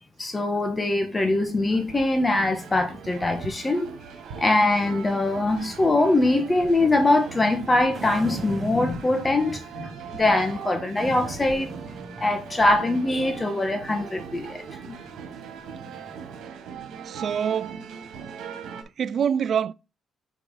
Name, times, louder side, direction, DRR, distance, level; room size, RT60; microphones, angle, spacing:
voice 1, 0.2-3.9 4.4-11.7 12.2-14.9, left 2 dB, 25° left, 1.6 m, -23 dB
sound 1, 1.1-18.8, right 6 dB, 85° right, 1.8 m, -40 dB
sound 2, 7.9-9.8 11.0-12.8, right 3 dB, 35° right, 1.5 m, -40 dB
voice 2, 17.1-17.8 19.0-19.7, right 8 dB, 55° right, 0.3 m, -25 dB
7.0 x 4.8 x 3.9 m
cardioid pair, 90°, 0 cm